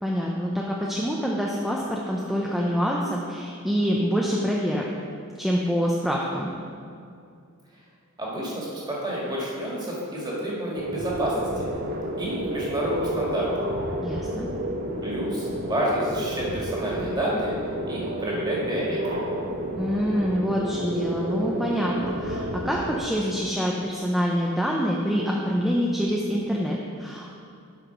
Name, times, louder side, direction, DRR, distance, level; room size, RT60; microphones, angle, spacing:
voice 1, 0.0-4.9 5.4-6.5 14.0-14.5 19.8-27.3, equal, ahead, -3 dB, 0.5 m, -26 dB
voice 2, 8.2-11.6 12.2-13.7 15.0-17.5 17.9-19.3, equal, 20° right, -5 dB, 1.9 m, -29 dB
sound 1, 10.8-23.0, right 1 dB, 45° right, 0.9 m, -31 dB
8.1 x 5.7 x 5.9 m, 2.4 s
head